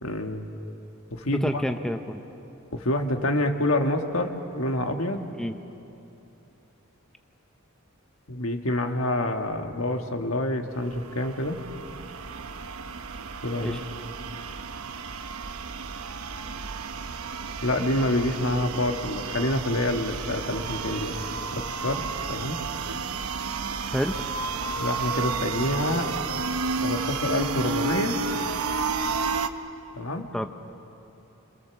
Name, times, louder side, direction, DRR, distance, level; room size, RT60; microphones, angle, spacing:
voice 1, 0.0-0.5 1.1-1.5 2.7-5.3 8.3-11.6 13.4-13.8 17.6-21.2 21.5-22.0 22.3-22.6 24.8-26.1 26.8-28.2 30.0-30.3, left 1 dB, 70° left, 5 dB, 1.7 m, -27 dB
voice 2, 1.3-2.2 5.4-5.6 13.6-13.8 23.9-24.2 30.3-30.5, equal, 5° left, 6 dB, 0.7 m, -28 dB
sound 1, 10.8-29.5, right 4 dB, 90° right, 0.9 m, -32 dB
26.5 x 26.0 x 7.1 m, 2.9 s
head